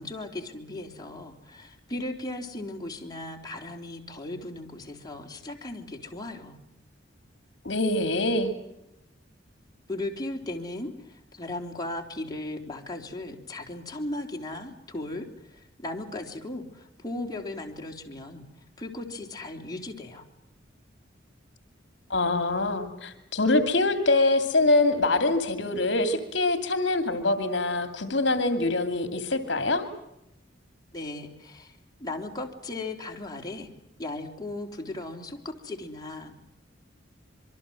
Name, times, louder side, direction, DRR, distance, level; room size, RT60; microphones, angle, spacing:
voice 1, 0.0-6.6 9.9-18.4 18.8-20.2 30.9-33.7 34.0-36.4, left 2 dB, 20° left, 1 dB, 3.6 m, -37 dB
voice 2, 7.6-8.5 22.1-29.8, left 2 dB, 65° left, 9 dB, 2.7 m, -24 dB
26.5 x 24.0 x 7.7 m, 0.85 s
head